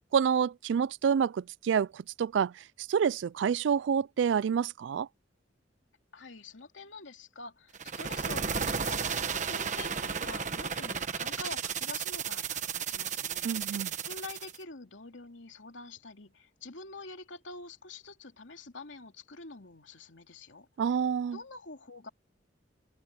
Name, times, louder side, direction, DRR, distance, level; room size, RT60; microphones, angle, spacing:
voice 1, 0.1-2.5 2.9-5.1 13.4-13.9 20.8-21.4, right 7 dB, 75° right, 0.3 m, -28 dB
voice 2, 6.1-13.7 14.1-20.7 21.3-22.1, left 3 dB, 90° left, 2.9 m, -46 dB
sound 1, 7.7-14.6, right 6 dB, 40° right, 1.2 m, -34 dB
head